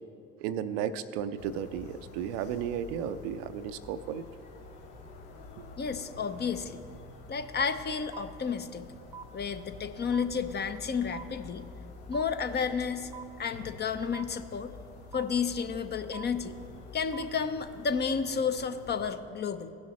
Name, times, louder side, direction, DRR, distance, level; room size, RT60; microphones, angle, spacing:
voice 1, 0.4-4.3, right 8 dB, 70° right, 12 dB, 0.5 m, -34 dB
sound 1, 1.4-19.1, left 3 dB, 70° left, 1.2 m, -48 dB
voice 2, 5.8-6.8 7.3-8.9 9.3-11.7 12.1-13.1 13.4-14.7 15.1-16.6 16.9-19.7, left 6 dB, 30° left, 9 dB, 0.6 m, -31 dB
sound 2, 8.1-8.2 9.1-9.2 10.1-10.2 11.1-11.2 12.1-12.2 13.1-13.2 14.1-14.2 15.1-15.2 16.1-16.2 17.1-17.2, right 7 dB, 10° right, 0.6 m, -42 dB
17.0 x 6.3 x 3.1 m, 2.5 s
hypercardioid pair, 55°, 34 cm